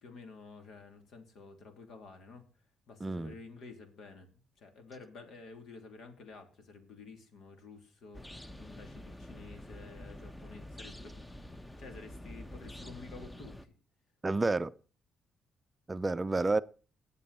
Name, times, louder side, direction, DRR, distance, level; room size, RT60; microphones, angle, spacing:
voice 1, 0.0-2.4 2.9-4.3 4.6-11.3 11.8-13.8 16.3-16.4, left 4 dB, 70° left, 3.0 m, -51 dB
voice 2, 3.0-3.3 14.2-14.7 15.9-16.6, right 3 dB, 25° right, 0.5 m, -30 dB
sound 1, 8.1-13.7, left 1 dB, 10° left, 0.9 m, -47 dB
18.5 x 7.5 x 4.1 m
cardioid pair, 90°, 0 cm